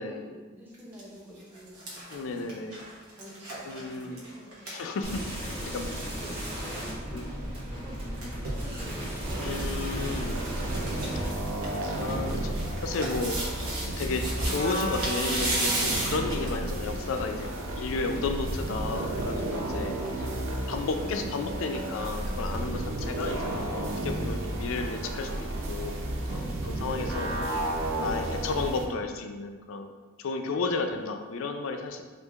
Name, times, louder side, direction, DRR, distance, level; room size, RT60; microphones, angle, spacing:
voice 1, 0.0-2.7 3.1-4.9 5.4-9.4 19.3-20.9 22.5-22.9 26.2-26.9, equal, 10° right, -5 dB, 0.5 m, -49 dB
sound 1, 0.7-1.0 1.4-5.6 5.9-6.0 6.2-6.5 7.7-8.6 9.2-9.7 10.0-10.1 10.4-11.1 11.4-16.6 17.2-17.3, right 2 dB, 90° right, 0.9 m, -34 dB
voice 2, 2.1-2.8 3.7-4.2 4.7-5.9 7.1-7.3 9.4-10.4 11.9-13.4 13.8-19.9 20.7-25.3 25.7-29.9 30.2-32.0, left 3 dB, 70° left, 6 dB, 0.3 m, -33 dB
sound 2, 5.0-11.3, equal, 25° right, 1.0 m, -35 dB
sound 3, 9.2-28.9, right 1 dB, 65° right, 0.5 m, -32 dB
4.4 x 2.5 x 2.3 m, 1.4 s
head